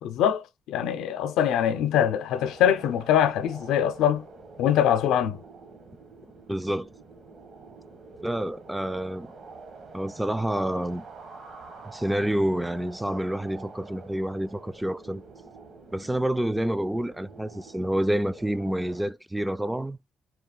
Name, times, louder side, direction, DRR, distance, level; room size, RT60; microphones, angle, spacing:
voice 1, 0.0-4.2 4.6-5.4, left 10 dB, 90° left, 0.6 m, -23 dB
sound 1, 2.3-19.1, right 3 dB, 55° right, 1.4 m, -47 dB
voice 2, 6.5-6.9 8.2-9.3 9.9-11.0 11.8-15.2 15.9-20.0, right 1 dB, 10° right, 0.3 m, -28 dB
4.4 x 2.4 x 3.7 m
cardioid pair, 90°, 0 cm